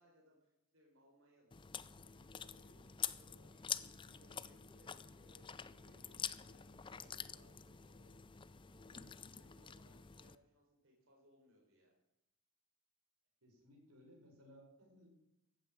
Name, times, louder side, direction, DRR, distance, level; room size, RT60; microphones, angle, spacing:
voice 1, 0.0-8.2 8.9-11.9, equal, 60° right, -1 dB, 4.1 m, -70 dB
Chewing mastication, 1.5-10.4, left 8 dB, 20° left, 0.4 m, -47 dB
sound 1, 2.7-9.2, right 1 dB, 35° right, 3.5 m, -71 dB
voice 2, 13.4-15.3, equal, 90° right, 0 dB, 5.1 m, -62 dB
15.0 x 9.3 x 7.4 m, 0.86 s
head